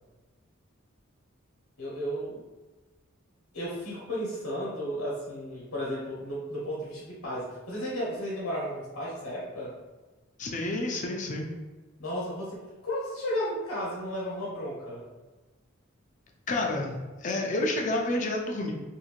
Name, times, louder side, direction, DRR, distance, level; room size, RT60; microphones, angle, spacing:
voice 1, 1.8-2.4 3.5-9.7 12.0-15.0, equal, 80° left, -6 dB, 0.8 m, -34 dB
voice 2, 10.4-11.5 16.5-18.7, left 2 dB, 35° left, 1 dB, 0.4 m, -29 dB
3.0 x 2.7 x 2.4 m, 1.2 s
head